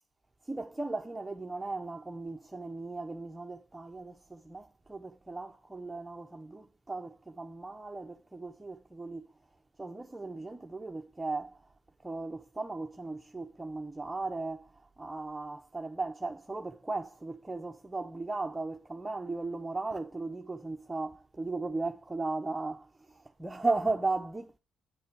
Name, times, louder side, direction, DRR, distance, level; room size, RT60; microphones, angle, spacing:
voice 1, 0.5-9.3 9.8-11.6 12.0-14.7 15.0-24.6, right 3 dB, 15° right, 0.8 m, -36 dB
9.7 x 6.6 x 4.7 m
cardioid pair, 90°, 0 cm